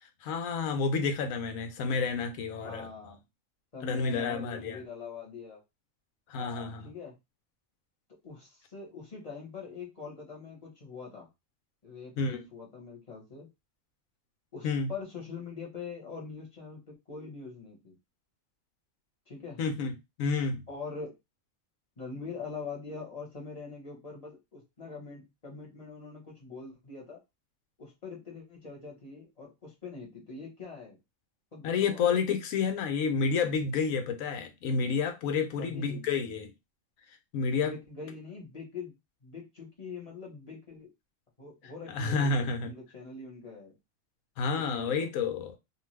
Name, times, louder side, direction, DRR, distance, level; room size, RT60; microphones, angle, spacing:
voice 1, 0.2-2.9 3.8-4.8 6.3-6.9 12.2-12.5 14.6-14.9 19.6-20.6 31.6-36.5 37.3-37.7 41.9-42.7 44.4-45.6, left 5 dB, 85° left, 1.1 m, -30 dB
voice 2, 2.6-3.2 3.7-5.6 6.3-7.1 8.2-11.3 11.8-13.5 14.5-18.0 19.3-19.6 20.7-21.2 22.0-27.2 27.8-31.0 31.5-32.0 35.4-36.1 37.5-40.9 41.4-43.8 44.5-45.1, left 4 dB, 30° left, 1.1 m, -43 dB
2.6 x 2.4 x 3.2 m
omnidirectional pair, 1.4 m